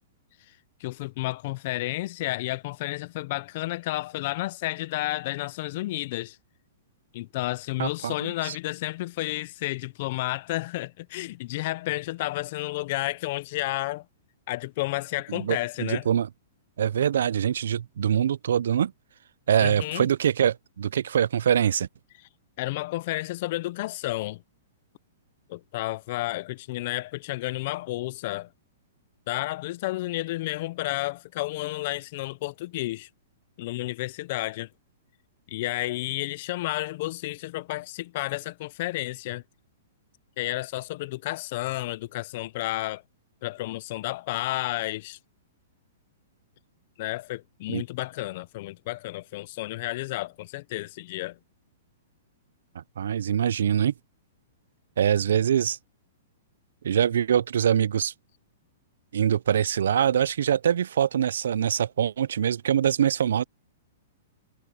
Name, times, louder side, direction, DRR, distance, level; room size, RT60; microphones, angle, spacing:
voice 1, 0.8-6.4 7.1-14.1 14.5-16.1 19.6-20.1 22.2-22.3 22.6-24.4 25.5-28.5 29.3-33.1 33.6-34.7 35.5-39.4 40.4-43.0 43.4-45.2 47.0-51.4, left 18 dB, 40° left, 0.4 m, -31 dB
voice 2, 7.8-8.6 15.3-16.3 16.8-18.9 19.5-21.9 47.7-47.8 52.8-53.9 55.0-55.8 56.8-58.1 59.1-63.4, right 9 dB, 75° right, 0.4 m, -24 dB
hypercardioid pair, 170°, 0 cm